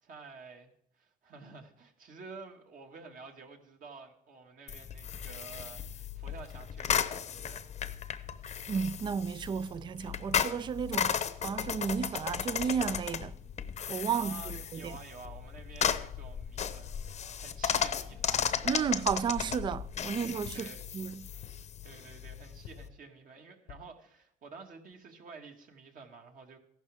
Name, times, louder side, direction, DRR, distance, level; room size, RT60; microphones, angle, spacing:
voice 1, 0.0-7.6 14.1-18.5 20.5-21.0 21.8-26.6, right 4 dB, 55° right, 2.0 m, -50 dB
sound 1, 4.7-22.9, left 8 dB, 40° left, 0.8 m, -35 dB
voice 2, 8.7-11.2 11.4-13.3 13.9-14.9 18.6-20.7 20.9-21.3, right 7 dB, 30° right, 0.3 m, -33 dB
sound 2, 19.5-19.8 20.4-20.9 21.4-21.8 22.6-23.0 23.7-24.0 24.5-24.6 24.9-25.0, left 10 dB, 75° left, 0.9 m, -50 dB
14.5 x 11.5 x 3.6 m
cardioid pair, 110°, 17 cm